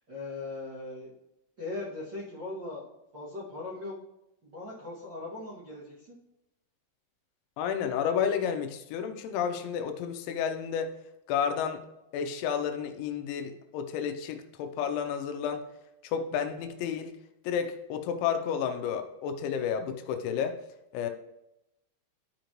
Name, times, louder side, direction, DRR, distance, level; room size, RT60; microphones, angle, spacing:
voice 1, 0.1-1.1 1.6-2.9 3.1-3.9 4.4-6.2, left 2 dB, 70° right, -8 dB, 1.1 m, -39 dB
voice 2, 7.6-10.9 11.3-11.8 12.1-15.6 16.0-17.1 17.4-20.6 20.9-21.1, left 7 dB, 80° left, 6 dB, 3.0 m, -31 dB
12.5 x 5.2 x 3.0 m, 0.87 s
omnidirectional pair, 5.4 m